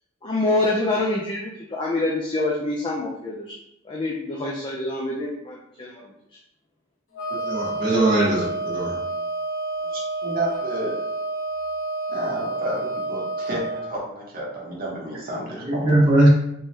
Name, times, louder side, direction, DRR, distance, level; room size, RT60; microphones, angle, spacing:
voice 1, 0.2-3.6 3.8-6.4, left 2 dB, 25° left, -2 dB, 0.4 m, -26 dB
Wind instrument woodwind instrument, 7.1-13.9, right 2 dB, 70° left, 1.0 m, -29 dB
voice 2, 7.4-9.0 15.6-16.3, right 1 dB, 25° right, -9 dB, 1.5 m, -20 dB
voice 3, 9.9-11.0 12.1-15.8, right 1 dB, 50° right, -4 dB, 1.1 m, -31 dB
3.6 x 3.1 x 2.7 m, 0.80 s
head